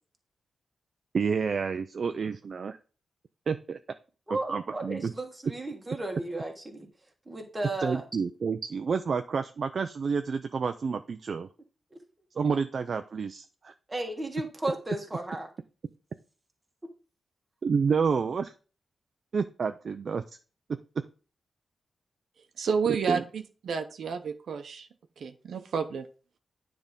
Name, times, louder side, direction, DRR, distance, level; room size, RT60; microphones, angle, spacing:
voice 1, 1.1-2.8 3.5-3.8 4.3-5.1 7.8-11.5 12.4-13.7 17.6-18.5 19.3-20.2 23.1-23.2, right 5 dB, 45° right, 9 dB, 0.4 m, -29 dB
voice 2, 4.3-6.9 7.3-8.0 13.9-15.5, right 1 dB, 15° right, 2 dB, 1.4 m, -34 dB
voice 3, 22.6-24.9 25.2-26.1, right 6 dB, 70° right, 7 dB, 0.7 m, -30 dB
9.7 x 3.4 x 5.2 m, 0.36 s
wide cardioid pair, 175°, 0 cm